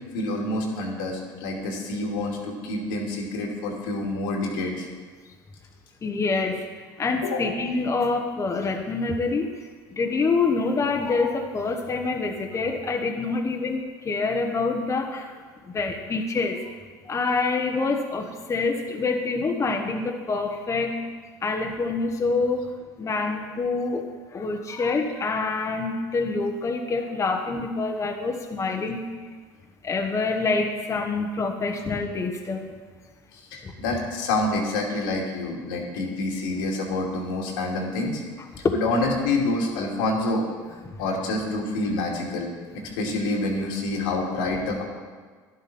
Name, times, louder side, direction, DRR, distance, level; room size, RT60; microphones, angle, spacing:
voice 1, 0.1-4.9 7.2-7.6 11.2-11.3 33.5-38.2 38.8-40.5 41.0-44.8, left 2 dB, 90° left, -1 dB, 2.6 m, -27 dB
voice 2, 6.0-6.6 7.0-16.7 17.0-20.9 21.4-29.0 29.8-32.7 33.6-33.7 38.6-38.7 40.8-41.0, left 3 dB, 25° left, 3 dB, 1.2 m, -26 dB
11.5 x 11.0 x 4.3 m, 1.5 s
supercardioid pair, 100°, 11 cm